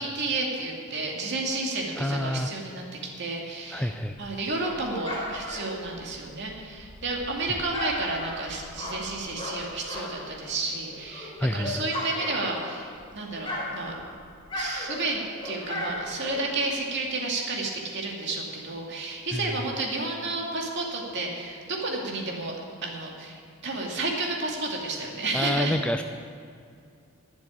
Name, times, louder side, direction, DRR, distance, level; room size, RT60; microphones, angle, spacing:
voice 1, 0.0-2.8 3.2-3.9 4.2-13.9 14.5-25.8, right 2 dB, 55° right, -1 dB, 2.4 m, -31 dB
voice 2, 2.0-2.5 3.7-4.2 9.9-10.1 11.4-11.8 19.3-19.5 25.3-26.0, left 1 dB, 5° left, 7 dB, 0.4 m, -28 dB
Dog, 4.1-10.4 10.7-13.0 13.3-16.7, left 1 dB, 25° left, 3.4 m, -36 dB
11.5 x 7.1 x 9.9 m, 2.4 s
head